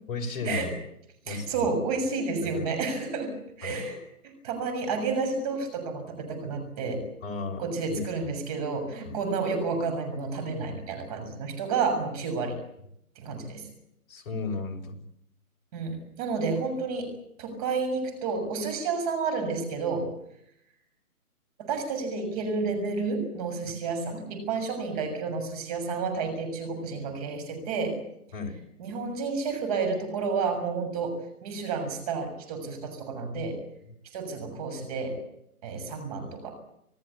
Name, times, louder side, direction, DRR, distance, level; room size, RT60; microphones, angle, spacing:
voice 1, 0.1-0.7 1.2-1.7 2.4-2.7 3.6-3.9 7.2-8.3 9.0-9.2 14.1-15.0 28.3-28.6, left 4 dB, 40° left, 1 dB, 6.1 m, -34 dB
voice 2, 1.3-4.0 4.2-7.1 7.6-12.6 13.2-13.7 15.7-17.1 17.4-20.1 21.6-27.9 28.8-33.6 34.1-35.2 35.6-36.5, right 4 dB, 25° right, 6 dB, 6.8 m, -30 dB
27.5 x 17.0 x 8.4 m, 0.77 s
hypercardioid pair, 160°, 44 cm